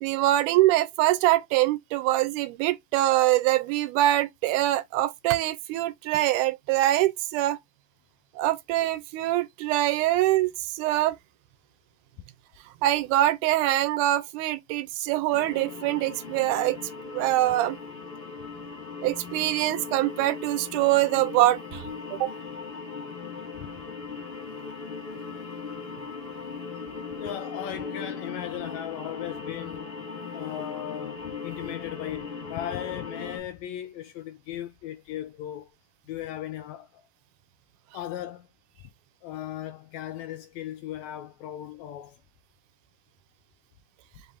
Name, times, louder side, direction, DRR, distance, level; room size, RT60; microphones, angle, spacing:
voice 1, 0.0-7.6 8.4-11.2 12.8-16.8 17.0-17.8 19.0-22.3, right 15 dB, 85° right, 2.0 m, -24 dB
sound 1, 15.3-33.4, left 5 dB, 30° left, 1.1 m, -38 dB
voice 2, 27.2-29.9 30.3-35.7 36.1-37.1 37.9-38.5 39.2-42.2, left 11 dB, 80° left, 1.6 m, -37 dB
5.2 x 2.6 x 3.3 m
omnidirectional pair, 3.6 m